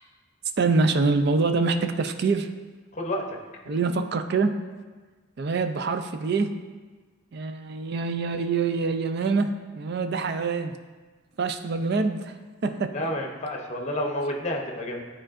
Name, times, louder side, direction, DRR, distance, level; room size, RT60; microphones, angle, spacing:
voice 1, 0.6-2.5 3.7-4.5 5.4-6.5 7.3-10.8 11.4-12.2 12.6-12.9, right 4 dB, 50° right, 8 dB, 0.4 m, -25 dB
voice 2, 2.9-3.4 12.9-15.0, left 1 dB, 35° left, 1 dB, 0.8 m, -30 dB
10.0 x 4.4 x 2.5 m, 1.4 s
head